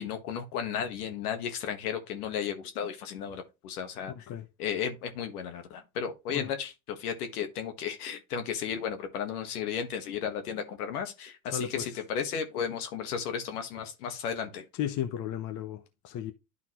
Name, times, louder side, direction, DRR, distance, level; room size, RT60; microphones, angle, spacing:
voice 1, 0.0-4.3 4.6-14.6, left 8 dB, 75° left, 1.6 m, -34 dB
voice 2, 11.5-11.8 14.8-16.3, left 10 dB, 40° left, 1.0 m, -34 dB
11.5 x 3.9 x 3.0 m
hypercardioid pair, 95°, 45 cm